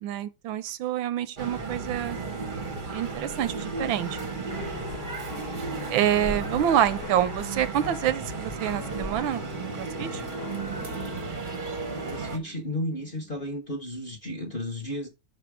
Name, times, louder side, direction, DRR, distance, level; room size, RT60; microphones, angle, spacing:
voice 1, 0.0-2.2 2.9-4.2 5.9-10.2, right 11 dB, 80° right, 1.3 m, -27 dB
sound 1, 1.4-12.4, right 4 dB, 40° right, 0.7 m, -34 dB
sound 2, 1.7-13.6, equal, 5° left, 0.6 m, -50 dB
Piano, 4.5-11.3, left 12 dB, 80° left, 0.8 m, -43 dB
voice 2, 11.9-15.1, left 1 dB, 40° left, 0.8 m, -33 dB
5.9 x 4.3 x 4.7 m
omnidirectional pair, 2.2 m